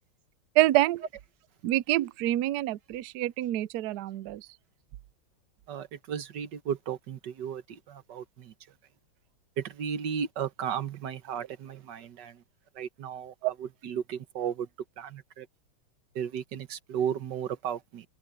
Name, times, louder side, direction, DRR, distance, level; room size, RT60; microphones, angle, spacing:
voice 1, 0.6-1.0 1.6-4.5 13.4-13.5, right 16 dB, 90° right, 0.8 m, -26 dB
voice 2, 5.7-7.6 7.9-8.5 9.6-12.3 12.8-14.7 15.0-15.5 16.1-18.0, right 8 dB, 55° right, 1.6 m, -34 dB
omnidirectional pair, 2.4 m